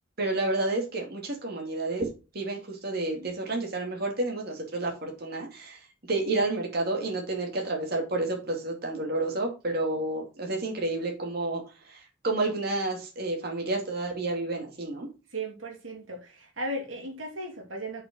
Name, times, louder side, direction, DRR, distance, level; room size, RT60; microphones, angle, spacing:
voice 1, 0.2-2.0 2.3-5.8 6.1-11.6 11.9-15.1, right 2 dB, 55° right, 2.5 m, -30 dB
voice 2, 15.3-18.0, right 1 dB, 85° right, 2.7 m, -36 dB
6.2 x 6.1 x 6.1 m
head